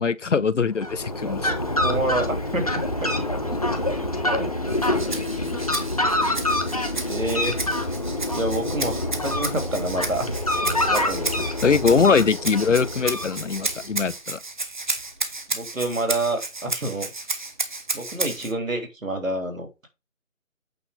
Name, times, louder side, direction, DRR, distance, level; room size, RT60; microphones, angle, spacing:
voice 1, 0.0-1.5 11.6-14.4, left 5 dB, 60° left, 0.7 m, -22 dB
Fowl, 0.7-13.7, left 1 dB, 25° left, 0.8 m, -26 dB
voice 2, 1.5-2.7 4.2-4.5 5.5-5.6 7.1-7.6 8.3-10.3 10.6-11.3 15.5-17.1 17.9-19.9, right 2 dB, 75° right, 3.0 m, -28 dB
Rattle (instrument), 4.7-18.5, right 3 dB, 35° right, 1.0 m, -32 dB
8.4 x 4.2 x 4.9 m
figure-of-eight pair, 160°, 41 cm